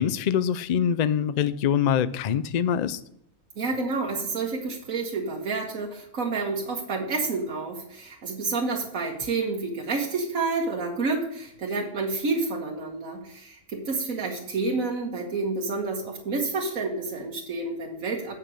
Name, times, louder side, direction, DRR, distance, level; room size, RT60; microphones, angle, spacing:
voice 1, 0.0-3.0, left 8 dB, 80° left, 15 dB, 0.3 m, -24 dB
voice 2, 3.6-18.3, right 3 dB, 90° right, -1 dB, 1.7 m, -29 dB
8.5 x 5.9 x 6.2 m, 0.71 s
omnidirectional pair, 1.4 m